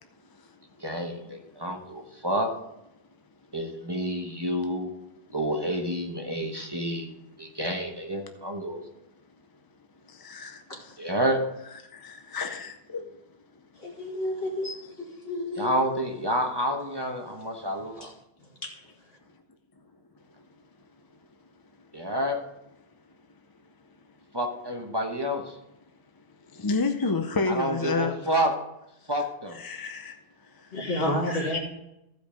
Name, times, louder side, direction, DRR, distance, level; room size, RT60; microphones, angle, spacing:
voice 1, 0.8-2.5 3.5-4.9 5.3-7.1 7.4-8.8 11.0-11.4 15.6-18.1 21.9-22.4 24.3-25.4 27.5-28.5 29.1-29.6, equal, 25° right, 1.1 m, -29 dB
voice 2, 10.1-11.0 11.9-13.1 26.5-28.4 29.5-30.1 30.5-30.7, left 3 dB, 30° left, 0.5 m, -30 dB
voice 3, 13.8-14.8 15.3-15.7 18.0-18.1 18.6-18.7 30.7-31.6, left 1 dB, 65° left, 2.3 m, -29 dB
14.5 x 5.2 x 5.1 m
omnidirectional pair, 1.1 m